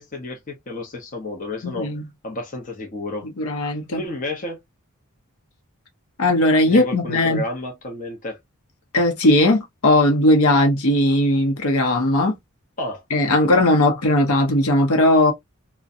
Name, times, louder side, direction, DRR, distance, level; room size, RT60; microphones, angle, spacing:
voice 1, 0.0-1.9 2.2-3.3 3.9-4.6 6.7-8.4 12.8-13.0, left 2 dB, 35° left, 0.7 m, -31 dB
voice 2, 1.6-2.0 3.4-4.0 6.2-7.4 8.9-12.4 13.1-15.3, left 1 dB, 70° left, 0.8 m, -18 dB
2.6 x 2.2 x 2.5 m
head